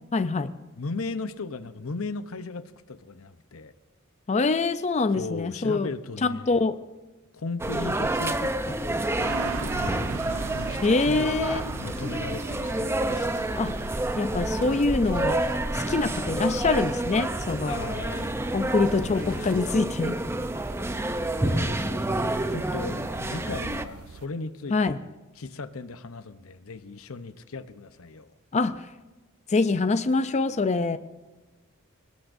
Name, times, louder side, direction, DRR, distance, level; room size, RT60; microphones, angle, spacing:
voice 1, 0.1-0.5 4.3-5.9 6.2-6.8 10.8-11.7 13.6-13.7 14.2-15.4 15.7-17.8 18.5-20.2 24.7-25.0 28.5-28.9 29.5-31.0, left 3 dB, 35° left, 11 dB, 0.5 m, -25 dB
voice 2, 0.8-3.7 5.2-6.6 7.3-10.1 10.5-13.5 17.7-18.4 19.0-19.9 21.4-25.1 25.4-28.3, left 3 dB, 80° left, 12 dB, 0.8 m, -37 dB
sound 1, 7.6-23.8, right 1 dB, 10° right, 0.6 m, -29 dB
sound 2, 9.2-24.3, right 5 dB, 80° right, 0.5 m, -42 dB
sound 3, 10.2-19.9, right 1 dB, 40° right, 1.7 m, -49 dB
24.5 x 19.5 x 2.7 m, 1.2 s
head